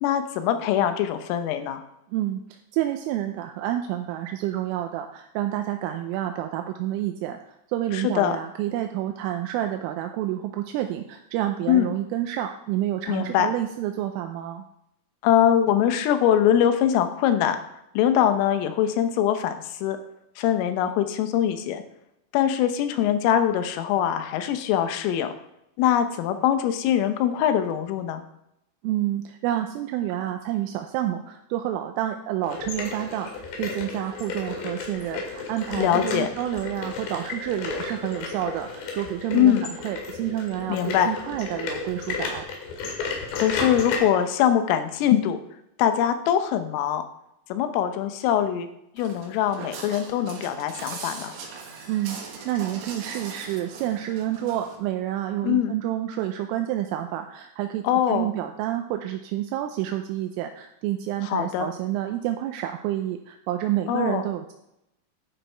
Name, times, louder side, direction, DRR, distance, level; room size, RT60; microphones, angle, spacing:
voice 1, 0.0-1.8 7.9-8.4 11.7-11.9 13.1-13.5 15.2-17.6 17.9-20.0 20.4-21.8 22.3-25.3 25.8-28.2 35.8-36.3 39.3-39.7 40.7-41.1 43.3-45.4 45.8-47.0 47.5-48.7 49.0-51.3 55.4-55.7 57.8-58.3 61.2-61.7 63.9-64.2, left 10 dB, 85° left, 8 dB, 3.4 m, -22 dB
voice 2, 2.1-14.7 28.8-42.5 51.9-52.2 52.5-64.5, right 12 dB, 85° right, 5 dB, 3.1 m, -29 dB
sound 1, 32.4-44.0, left 5 dB, 65° left, 3.9 m, -33 dB
Walk footsteps, 49.0-54.8, right 5 dB, 65° right, 2.8 m, -40 dB
12.0 x 10.0 x 3.4 m, 0.81 s
omnidirectional pair, 5.9 m